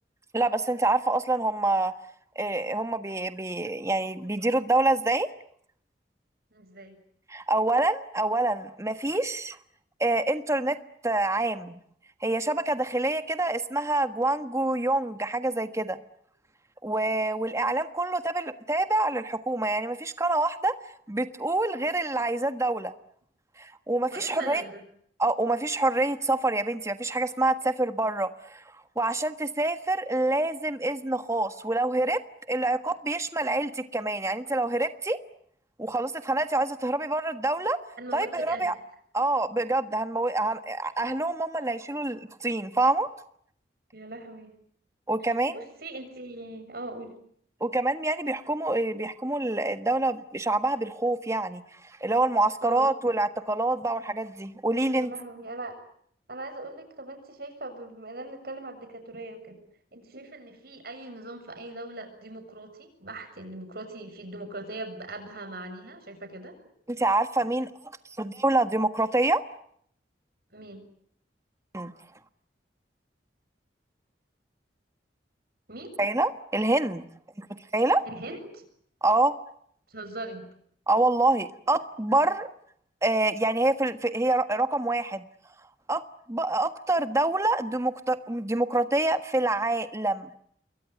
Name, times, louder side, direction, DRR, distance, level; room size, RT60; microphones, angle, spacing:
voice 1, 0.3-1.9 2.3-5.3 7.3-9.6 10.0-10.8 11.0-11.8 12.2-16.0 16.8-20.7 21.1-22.9 23.6-24.6 25.2-28.6 28.9-32.2 32.5-35.2 35.8-37.8 38.1-38.7 39.1-43.1 45.1-45.6 47.6-51.6 52.0-55.1 66.9-67.7 68.2-69.4 71.7-71.9 76.0-77.0 77.4-77.5 77.7-78.0 79.0-79.3 80.9-82.5 83.0-85.2 85.9-86.0 86.3-90.3, right 2 dB, 15° right, 10 dB, 1.5 m, -26 dB
voice 2, 6.5-7.0 24.1-24.8 38.0-38.7 43.9-44.5 45.5-47.1 52.6-52.9 54.9-55.8 56.3-59.6 59.9-66.6 70.5-70.8 75.7-76.0 78.0-78.7 79.9-80.5, right 2 dB, 60° right, 8 dB, 7.1 m, -40 dB
28.5 x 22.5 x 9.2 m, 0.68 s
head